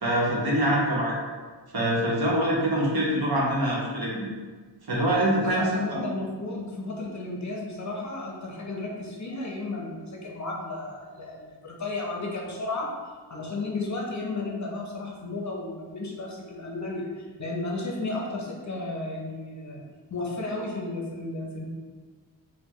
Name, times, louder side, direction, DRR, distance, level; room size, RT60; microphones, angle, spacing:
voice 1, 0.0-1.1 1.7-4.3 4.9-5.7, right 1 dB, 60° right, -5 dB, 1.0 m, -24 dB
voice 2, 5.4-12.9 13.3-19.8 20.1-21.6, left 2 dB, 40° left, -2 dB, 0.6 m, -33 dB
4.3 x 2.2 x 3.0 m, 1.5 s
wide cardioid pair, 100°, 43 cm